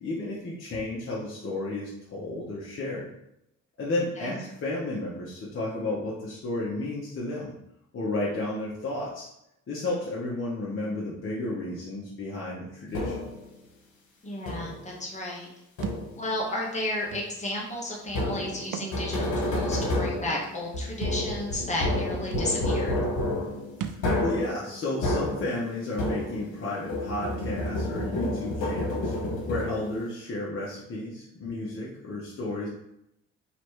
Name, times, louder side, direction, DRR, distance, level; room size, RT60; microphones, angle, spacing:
voice 1, 0.0-3.1 3.8-7.5 7.9-9.3 9.7-13.2 23.9-32.7, left 2 dB, 45° left, -5 dB, 1.0 m, -32 dB
sound 1, 12.9-13.5 14.5-14.9 15.8-16.3 18.1-26.6 26.9-30.0, left 1 dB, 85° left, 1.3 m, -30 dB
voice 2, 14.2-15.5 16.1-22.9, left 1 dB, 25° left, -3 dB, 1.3 m, -33 dB
Thump thud, 15.8-16.1 17.1-17.2 18.6-18.9 19.4-19.5 21.0-21.2 22.0-22.1 22.3-22.5 23.8-24.1, right 8 dB, 80° right, 0.5 m, -35 dB
3.1 x 3.1 x 4.6 m, 0.82 s
cardioid pair, 90°, 30 cm